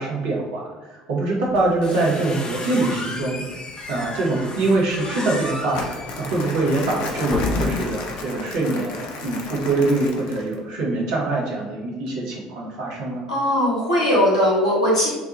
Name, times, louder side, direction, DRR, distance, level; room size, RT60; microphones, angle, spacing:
voice 1, 0.0-3.6 3.9-13.2, right 2 dB, 70° right, -3 dB, 1.1 m, -24 dB
sound 1, 1.5-8.1, left 2 dB, 30° left, 0.8 m, -31 dB
Crumpling crinkling, 5.7-10.6, left 3 dB, 65° left, 0.6 m, -33 dB
voice 2, 13.3-15.1, equal, 85° left, -6 dB, 1.3 m, -19 dB
6.0 x 2.3 x 2.7 m, 1.3 s
figure-of-eight pair, 60°, 3 cm